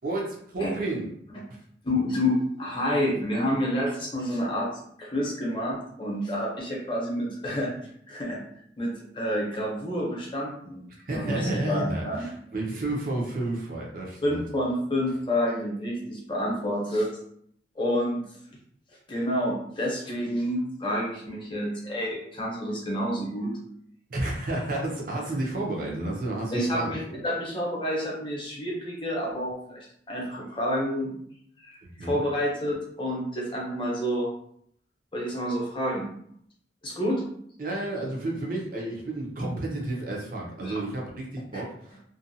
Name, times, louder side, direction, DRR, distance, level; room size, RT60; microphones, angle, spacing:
voice 1, 0.0-1.1 10.9-14.4 24.1-27.0 31.8-32.2 37.6-42.1, right 2 dB, 50° right, -1 dB, 0.7 m, -31 dB
voice 2, 1.8-4.7 5.0-7.7 8.1-8.4 8.8-10.8 11.1-12.3 14.2-17.1 17.8-18.3 19.1-23.6 26.5-31.1 31.6-34.3 35.1-36.1 36.8-37.2 40.6-40.8 41.5-41.6, equal, 30° left, -3 dB, 0.7 m, -29 dB
2.6 x 2.3 x 2.6 m, 0.66 s
head